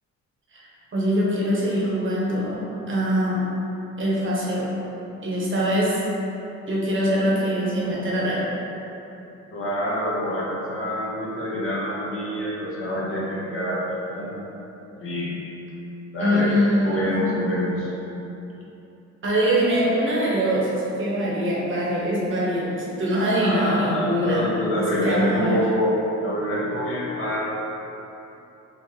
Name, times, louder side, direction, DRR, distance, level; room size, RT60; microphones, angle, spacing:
voice 1, 0.5-2.6 2.9-3.5 4.0-4.7 5.2-6.0 6.7-8.5 16.2-17.1 19.2-24.5 24.7-25.6, equal, 40° right, -6 dB, 0.9 m, -23 dB
voice 2, 9.5-14.3 14.9-15.4 16.1-16.5 16.8-17.9 23.4-25.9 26.2-27.4, equal, 45° left, -6 dB, 0.9 m, -26 dB
3.8 x 2.4 x 3.1 m, 3.0 s
cardioid pair, 90°, 30 cm